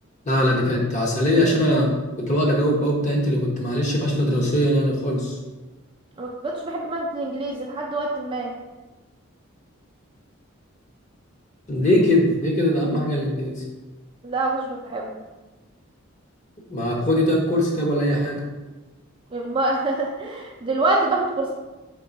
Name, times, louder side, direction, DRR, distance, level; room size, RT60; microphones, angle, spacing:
voice 1, 0.3-1.9 2.2-5.3 11.7-13.6 16.7-18.4, left 1 dB, 35° left, -2 dB, 0.8 m, -21 dB
voice 2, 6.2-8.5 14.2-15.1 19.3-21.5, right 2 dB, 25° right, -1 dB, 0.4 m, -25 dB
3.7 x 3.4 x 4.0 m, 1.2 s
head